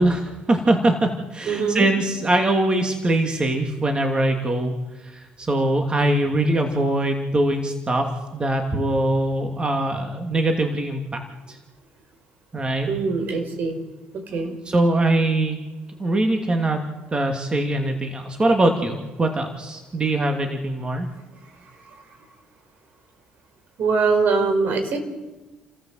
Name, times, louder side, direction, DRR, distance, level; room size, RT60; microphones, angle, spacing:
voice 1, 0.0-4.7 5.0-8.0 8.3-11.0 11.5-11.6 12.5-12.9 14.6-15.6 16.0-16.8 17.1-21.1, right 1 dB, 25° right, 3 dB, 2.8 m, -22 dB
voice 2, 1.5-1.9 12.9-13.8 14.3-14.5 23.8-25.0, right 4 dB, 60° right, 5 dB, 5.2 m, -22 dB
30.0 x 14.0 x 8.0 m, 1.2 s
supercardioid pair, 80°, 3 cm